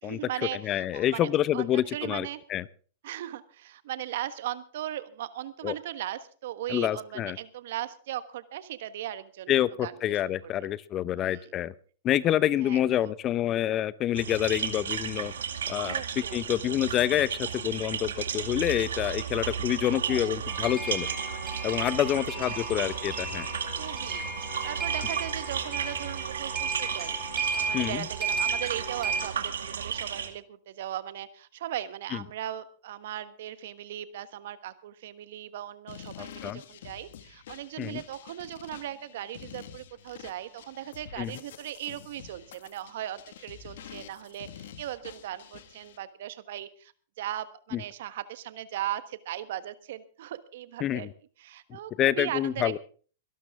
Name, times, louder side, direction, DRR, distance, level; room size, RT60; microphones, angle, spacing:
voice 1, 0.0-2.4 3.0-10.5 11.1-11.5 12.6-13.1 15.7-16.4 19.8-20.3 22.0-22.7 23.8-24.3 24.6-46.9 47.2-51.1 51.4-52.8, right 12 dB, 65° right, 13 dB, 1.3 m, -38 dB
voice 2, 0.6-2.6 5.6-5.7 6.7-7.4 9.5-11.7 12.0-15.3 15.7-16.0 16.3-21.1 21.6-23.5 27.7-28.0 36.2-36.6 37.8-38.0 41.2-41.3 47.7-47.8 50.8-51.1 51.7-52.8, left 12 dB, 30° left, 19 dB, 0.7 m, -27 dB
sound 1, 14.1-30.3, right 7 dB, 90° right, 2.2 m, -34 dB
sound 2, 20.5-29.3, right 4 dB, 20° right, 6.3 m, -34 dB
sound 3, 35.9-46.0, left 9 dB, 70° left, 1.8 m, -48 dB
22.5 x 12.5 x 3.6 m, 0.41 s
hypercardioid pair, 125°, 0 cm